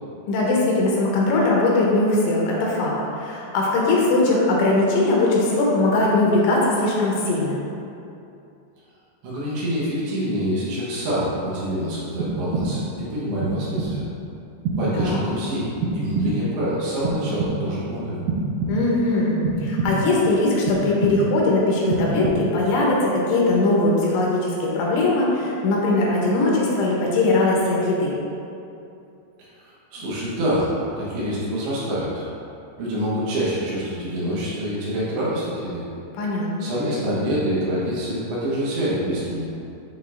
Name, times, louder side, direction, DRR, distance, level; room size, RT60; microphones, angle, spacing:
voice 1, 0.3-7.6 14.9-15.2 18.7-28.2 36.1-36.7, left 2 dB, 85° left, -4 dB, 3.4 m, -20 dB
voice 2, 9.2-14.1 14.8-18.2 29.4-32.3 32.8-35.8 36.6-39.5, equal, 70° right, -8 dB, 2.9 m, -26 dB
sound 1, 12.2-13.0 13.4-14.1 14.7-15.4 15.8-16.6 17.0-17.9 18.3-19.1 19.4-20.2 20.7-21.5 21.9-22.7, right 3 dB, 90° right, 2.2 m, -26 dB
9.7 x 3.9 x 2.5 m, 2.6 s
omnidirectional pair, 5.2 m